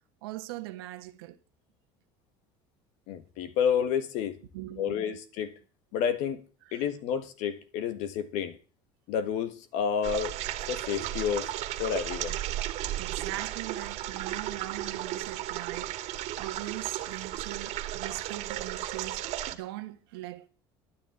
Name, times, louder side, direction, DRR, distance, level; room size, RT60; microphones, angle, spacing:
voice 1, 0.2-1.4 4.5-5.2 6.6-6.8 13.0-20.5, right 17 dB, 85° right, 1.5 m, -41 dB
voice 2, 3.1-4.4 4.8-5.5 5.9-6.4 6.7-8.6 9.1-10.3 10.7-11.5 11.8-12.4, left 8 dB, 70° left, 1.7 m, -30 dB
sound 1, 10.0-19.5, right 13 dB, 65° right, 2.0 m, -34 dB
13.0 x 9.7 x 8.0 m
supercardioid pair, 85°, 12 cm